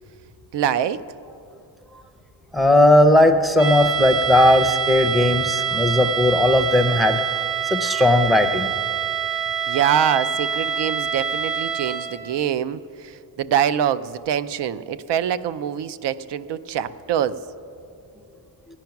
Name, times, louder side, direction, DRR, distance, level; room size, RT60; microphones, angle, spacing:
voice 1, 0.5-1.0 9.7-17.4, right 9 dB, 75° right, 14 dB, 0.6 m, -24 dB
voice 2, 2.5-7.2 7.6-8.7, left 1 dB, ahead, 8 dB, 0.5 m, -17 dB
sound 1, 3.6-12.3, right 7 dB, 30° right, 1.1 m, -25 dB
16.5 x 10.5 x 5.9 m, 2.5 s
wide cardioid pair, 160°, 42 cm